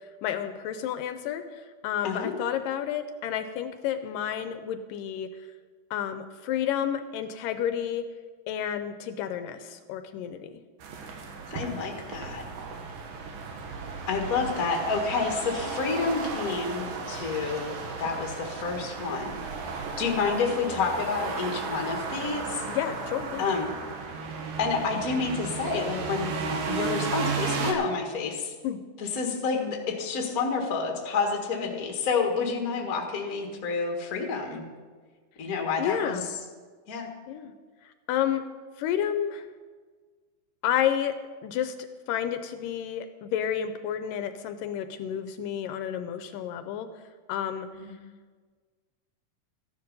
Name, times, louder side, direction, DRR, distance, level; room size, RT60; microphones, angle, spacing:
voice 1, 0.2-5.3 5.9-8.0 8.5-10.5 20.2-20.3 22.7-23.5 28.6-28.8 31.6-31.8 35.8-36.3 37.3-37.5 37.9-38.4 38.8-39.5 40.6-41.2 41.4-41.8 42.1-46.9 47.3-47.7, left 9 dB, 80° left, 9 dB, 2.2 m, -30 dB
sound 1, 10.8-27.7, right 5 dB, 75° right, 3.0 m, -34 dB
voice 2, 11.5-12.5 14.1-19.4 20.0-22.6 23.4-23.8 24.6-28.5 29.0-34.6 35.4-36.2 36.9-37.1 47.7-47.9, left 4 dB, 40° left, 2 dB, 1.3 m, -29 dB
14.5 x 10.5 x 5.3 m, 1.5 s
omnidirectional pair, 4.1 m